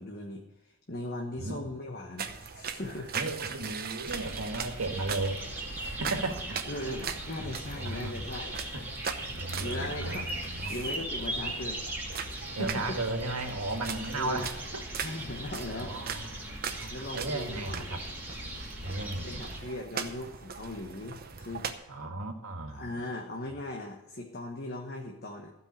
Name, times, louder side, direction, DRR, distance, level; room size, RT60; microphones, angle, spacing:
voice 1, 0.0-3.1 6.7-8.7 9.3-10.4 10.7-11.9 12.3-13.0 14.1-14.5 15.0-15.9 16.9-18.0 19.2-21.7 22.7-25.5, left 1 dB, 45° left, 1 dB, 1.2 m, -39 dB
sound 1, 2.2-21.7, right 6 dB, 40° right, 0.9 m, -40 dB
voice 2, 3.1-5.4 5.8-6.7 7.4-8.2 8.7-8.8 9.3-10.8 12.6-14.8 15.4-18.0 18.8-19.6 21.9-22.9, right 2 dB, 80° right, 4 dB, 1.8 m, -35 dB
sound 2, 4.0-19.6, right 1 dB, 10° right, 2.5 m, -39 dB
15.0 x 5.4 x 8.6 m, 0.94 s
head